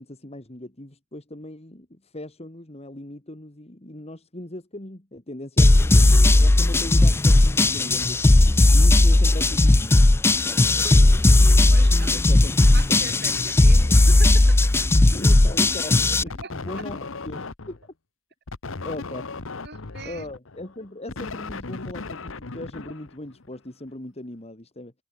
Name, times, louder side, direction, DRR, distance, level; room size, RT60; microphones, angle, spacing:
voice 1, 0.0-10.7 11.7-12.6 12.9-13.2 15.1-17.9 18.8-19.3 20.0-24.9, left 1 dB, 30° left, 2.3 m, -39 dB
sound 1, 5.6-16.2, left 2 dB, 10° left, 0.3 m, -16 dB
voice 2, 11.7-15.0 16.4-16.9 19.6-20.3, right 4 dB, 50° right, 5.0 m, -41 dB
sound 2, 16.3-17.9 18.5-23.6, left 3 dB, 65° left, 1.2 m, -36 dB
head